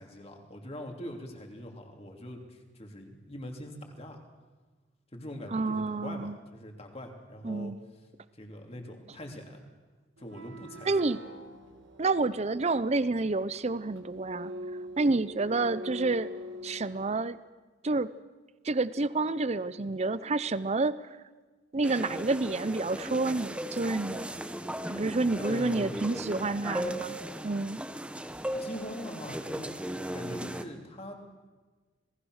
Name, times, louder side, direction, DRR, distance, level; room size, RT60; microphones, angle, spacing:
voice 1, 0.0-4.2 5.1-7.7 8.3-9.6 10.2-10.9 25.3-26.3 28.6-29.7 30.1-31.2, left 1 dB, 35° left, 3 dB, 3.0 m, -43 dB
voice 2, 5.5-6.4 7.4-7.8 10.9-11.2 12.0-14.5 15.0-16.3 16.6-17.4 17.8-18.1 18.6-21.2 21.7-24.3 24.9-27.2 27.4-27.8, right 3 dB, 35° right, 16 dB, 0.6 m, -29 dB
sound 1, 10.2-17.1, equal, 85° right, 2.2 m, -44 dB
sound 2, 21.8-30.6, right 1 dB, 5° right, 1.0 m, -37 dB
27.0 x 19.0 x 6.4 m, 1.3 s
head